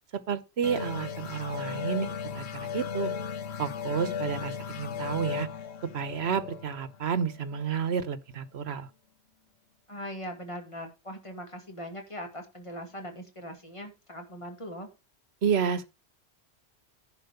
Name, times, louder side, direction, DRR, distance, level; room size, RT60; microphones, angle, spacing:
voice 1, 0.1-3.1 3.6-5.5 5.9-8.9 15.4-15.9, right 7 dB, 75° right, 1.3 m, -30 dB
sound 1, 0.6-7.9, left 7 dB, 85° left, 1.1 m, -36 dB
voice 2, 9.9-14.9, equal, 30° left, 2.4 m, -40 dB
10.5 x 5.1 x 6.8 m
omnidirectional pair, 1.1 m